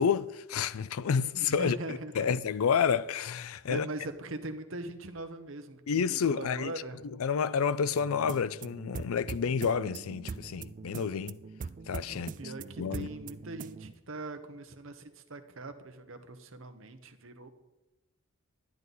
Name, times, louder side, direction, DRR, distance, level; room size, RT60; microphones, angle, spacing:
voice 1, 0.0-3.9 5.9-6.7 7.2-11.4 11.9-12.5 12.8-13.1, left 6 dB, 80° left, 0.4 m, -29 dB
voice 2, 1.3-2.3 3.7-7.0 12.1-17.5, right 2 dB, 65° right, 1.0 m, -41 dB
sound 1, 8.0-13.9, right 4 dB, 35° right, 0.3 m, -43 dB
11.0 x 10.5 x 4.1 m
head